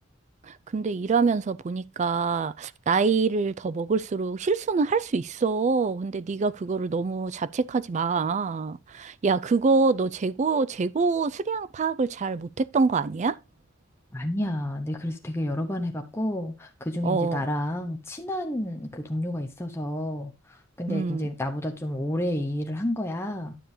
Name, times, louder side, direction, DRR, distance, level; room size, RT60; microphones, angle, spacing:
voice 1, 0.4-13.4 17.0-17.4 20.9-21.3, right 4 dB, 35° right, 0.4 m, -25 dB
voice 2, 14.1-23.5, left 1 dB, 15° left, 0.9 m, -30 dB
10.0 x 7.0 x 2.7 m
head